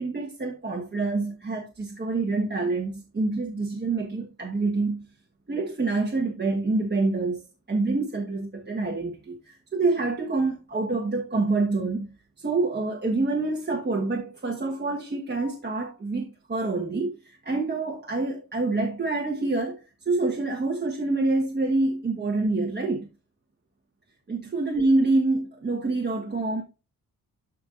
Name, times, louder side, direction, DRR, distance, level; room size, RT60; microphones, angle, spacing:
voice 1, 0.0-5.0 5.5-7.4 7.7-12.1 12.4-23.1 24.3-26.6, right 3 dB, 30° right, 1.3 m, -26 dB
13.0 x 5.4 x 2.5 m
wide cardioid pair, 145°, 35 cm